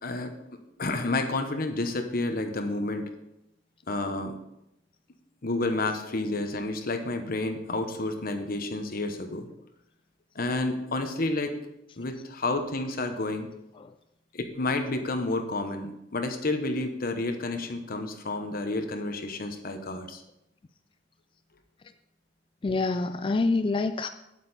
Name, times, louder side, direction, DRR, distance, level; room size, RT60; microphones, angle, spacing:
voice 1, 0.0-0.4 0.8-3.1 3.9-4.4 5.4-9.5 10.3-11.5 12.0-13.5 14.3-20.2, left 2 dB, 50° left, 6 dB, 1.0 m, -30 dB
voice 2, 22.6-24.1, left 3 dB, 30° left, 8 dB, 0.3 m, -26 dB
8.9 x 8.4 x 4.2 m, 0.85 s
head